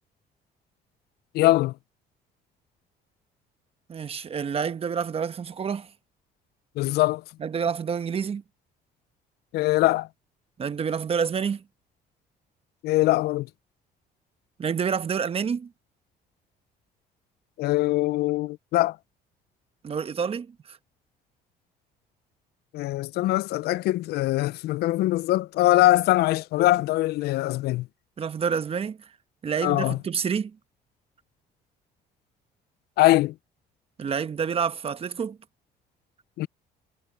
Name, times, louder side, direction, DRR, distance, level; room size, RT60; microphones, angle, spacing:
voice 1, 1.3-1.7 6.8-7.2 9.5-10.1 12.8-13.5 17.6-19.0 22.7-27.9 29.6-30.0 33.0-33.3 36.4-36.5, left 17 dB, 70° left, 0.4 m, -22 dB
voice 2, 3.9-5.9 7.4-8.4 10.6-11.6 14.6-15.7 19.8-20.8 28.2-29.0 29.4-30.6 34.0-35.4, right 6 dB, 35° right, 1.1 m, -28 dB
cardioid pair, 110°, 17 cm